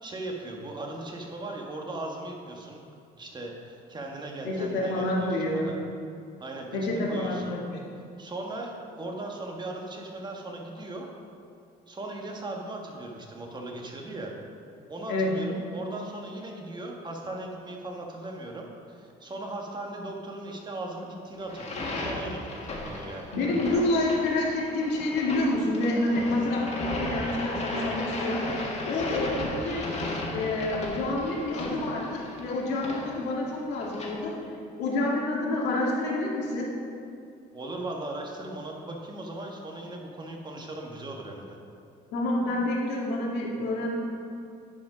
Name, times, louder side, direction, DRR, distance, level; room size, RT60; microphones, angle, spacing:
voice 1, 0.0-2.8 3.2-5.8 6.4-7.6 8.2-11.1 11.9-14.3 14.9-23.9 37.5-41.6, right 2 dB, 25° right, 0 dB, 1.4 m, -38 dB
voice 2, 4.4-5.7 6.7-7.8 15.1-15.4 23.3-29.9 30.3-34.4 34.8-36.7 42.1-43.9, left 1 dB, 85° left, -3 dB, 1.8 m, -28 dB
sound 1, 21.4-34.1, left 2 dB, 40° left, 1.9 m, -35 dB
10.0 x 5.0 x 5.0 m, 2.4 s
cardioid pair, 110°, 17 cm